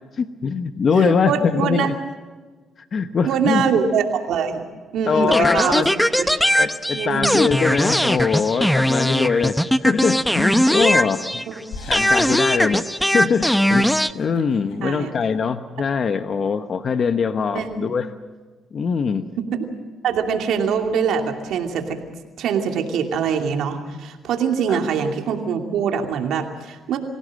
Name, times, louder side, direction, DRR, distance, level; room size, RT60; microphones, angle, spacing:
voice 1, 0.2-1.9 2.9-3.6 5.1-5.9 6.6-11.2 11.9-18.1 18.7-19.3 24.7-24.8, left 5 dB, 50° left, 9 dB, 1.0 m, -22 dB
voice 2, 0.9-1.9 3.2-4.6 4.9-5.8 6.2-6.3 6.9-7.4 11.5-11.6 14.8-15.1 17.5-17.8 19.4-19.5 20.0-22.0 22.4-27.0, right 6 dB, 80° right, 4 dB, 2.7 m, -23 dB
sound 1, 5.3-11.6 11.9-14.1, equal, 5° left, 0.7 m, -19 dB
sound 2, 10.0-10.4 11.0-13.2 13.6-13.7 14.0-14.7, left 3 dB, 85° left, 5.1 m, -41 dB
25.5 x 16.5 x 7.7 m, 1.4 s
cardioid pair, 90°, 0 cm